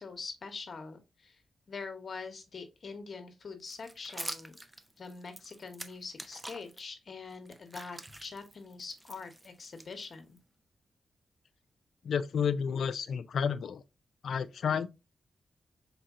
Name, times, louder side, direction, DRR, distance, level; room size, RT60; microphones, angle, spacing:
voice 1, 0.0-1.4 1.7-4.5 5.0-10.4, left 4 dB, 50° left, 0.9 m, -44 dB
sound 1, 3.6-6.8 7.3-10.4, right 1 dB, 15° right, 0.5 m, -46 dB
voice 2, 12.0-13.8 14.2-14.9, left 7 dB, 75° left, 0.4 m, -31 dB
4.3 x 3.6 x 2.4 m
wide cardioid pair, 110°, 0 cm